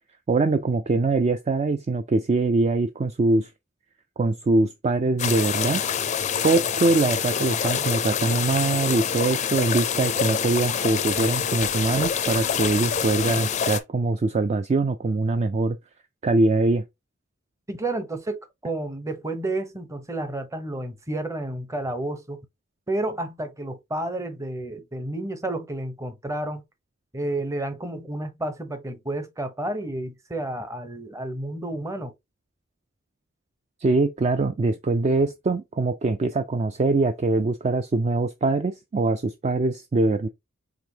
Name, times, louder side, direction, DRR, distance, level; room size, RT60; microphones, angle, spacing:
voice 1, 0.3-3.5 4.2-5.8 6.4-15.8 16.2-16.8 33.8-40.3, right 3 dB, 30° right, 0.3 m, -23 dB
sound 1, 5.2-13.8, left 7 dB, 35° left, 0.4 m, -26 dB
voice 2, 17.7-22.4 22.9-26.6 27.1-32.1, right 1 dB, 15° right, 0.7 m, -31 dB
5.0 x 3.4 x 2.7 m
head